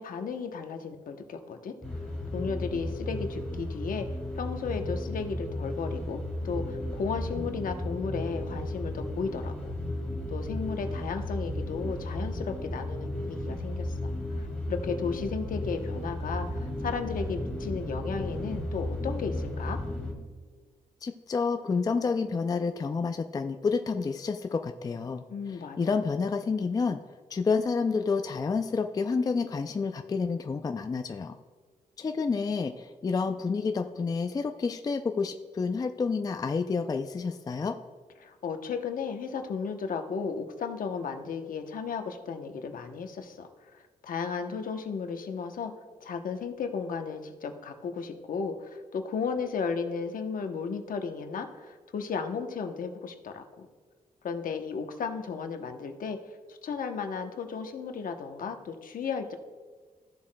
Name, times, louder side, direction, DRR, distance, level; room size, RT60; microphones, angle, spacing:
voice 1, 0.0-1.7 2.3-4.1 4.3-6.2 6.4-9.7 10.3-14.1 14.4-19.8 25.3-26.0 38.2-45.7 46.0-53.7 54.2-56.2 56.5-59.4, left 5 dB, 70° left, 6 dB, 0.8 m, -34 dB
sound 1, 1.8-20.1, left 1 dB, 5° left, 2.0 m, -34 dB
voice 2, 21.0-27.0 27.3-31.3 32.0-37.8, left 4 dB, 25° left, 7 dB, 0.3 m, -29 dB
14.5 x 7.2 x 2.2 m, 1.5 s
wide cardioid pair, 130°, 15 cm